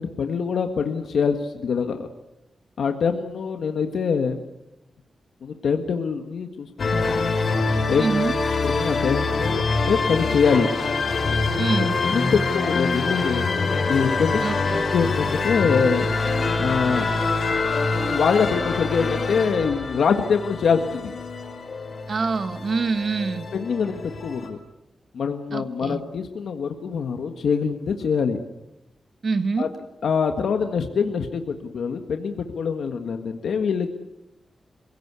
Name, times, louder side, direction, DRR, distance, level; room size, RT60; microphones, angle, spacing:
voice 1, 0.0-2.1 2.8-4.4 5.4-7.2 7.9-8.0 8.6-10.7 11.8-13.5 13.9-14.4 14.9-16.0 16.6-17.1 18.1-21.1 23.5-24.6 25.1-28.4 29.6-29.7 30.0-33.9, left 6 dB, 90° left, 5 dB, 1.7 m, -24 dB
sound 1, 6.8-24.5, left 3 dB, 50° left, 4.6 m, -25 dB
voice 2, 8.0-8.3 11.6-11.9 14.4-14.8 22.1-23.4 25.5-26.0 29.2-29.7, right 4 dB, 50° right, 11 dB, 1.4 m, -25 dB
26.5 x 17.5 x 8.3 m, 0.89 s
wide cardioid pair, 125°, 0 cm